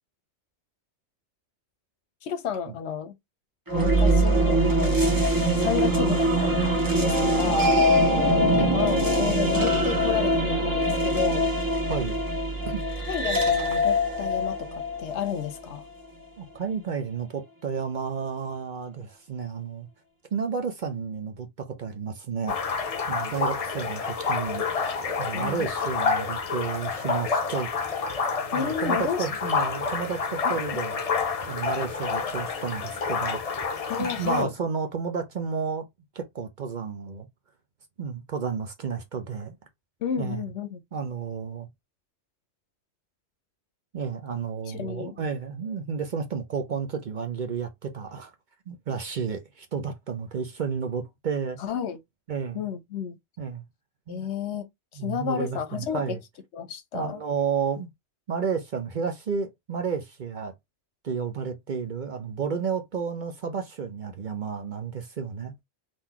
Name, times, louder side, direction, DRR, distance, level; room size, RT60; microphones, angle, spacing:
voice 1, 2.2-3.1 3.8-5.2 5.6-6.6 7.0-7.8 8.1-11.5 13.1-15.9 25.3-25.7 28.5-29.3 30.4-30.6 33.9-34.5 40.0-40.8 44.7-45.2 51.6-52.0 52.5-53.1 54.1-54.6 54.9-56.2 56.5-57.2, left 7 dB, 70° left, 1.0 m, -31 dB
sound 1, 3.7-15.8, equal, 20° right, 1.1 m, -23 dB
voice 2, 16.4-19.9 20.3-24.6 25.2-27.7 28.5-31.0 31.5-33.4 34.0-35.8 36.1-37.3 38.0-39.5 40.2-40.4 40.9-41.7 43.9-48.3 48.7-51.6 52.3-52.6 53.4-53.6 54.1-54.3 55.0-56.2 56.9-57.9 58.3-60.5 61.0-65.6, right 6 dB, 50° right, 0.7 m, -31 dB
sound 2, 22.5-34.4, left 5 dB, 45° left, 0.5 m, -28 dB
3.8 x 2.6 x 2.9 m
omnidirectional pair, 1.2 m